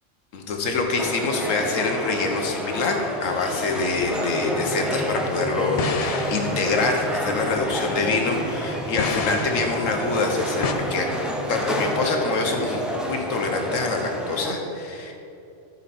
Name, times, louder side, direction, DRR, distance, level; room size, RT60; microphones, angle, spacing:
voice 1, 0.3-11.1 11.5-12.8 13.1-15.1, left 3 dB, 85° left, 3 dB, 1.4 m, -25 dB
sound 1, 1.0-14.5, equal, ahead, 0.6 m, -29 dB
sound 2, 2.7-4.6 5.6-8.6 8.9-10.7, left 5 dB, 65° left, 0.3 m, -32 dB
12.5 x 5.8 x 4.2 m, 2.8 s
omnidirectional pair, 1.3 m